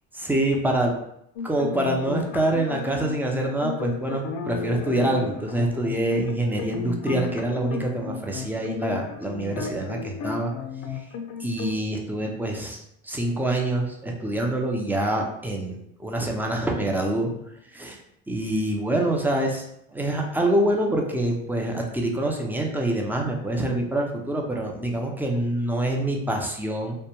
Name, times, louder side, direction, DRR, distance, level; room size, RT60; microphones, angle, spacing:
voice 1, 0.1-0.9 1.4-10.5 10.9-11.1 11.4-17.3 17.7-18.0 18.3-19.6 19.9-27.0, right 1 dB, 5° right, 1 dB, 0.4 m, -26 dB
sound 1, 1.4-11.7, left 6 dB, 60° left, 0.5 m, -34 dB
2.1 x 2.1 x 2.9 m, 0.76 s
hypercardioid pair, 80°, 34 cm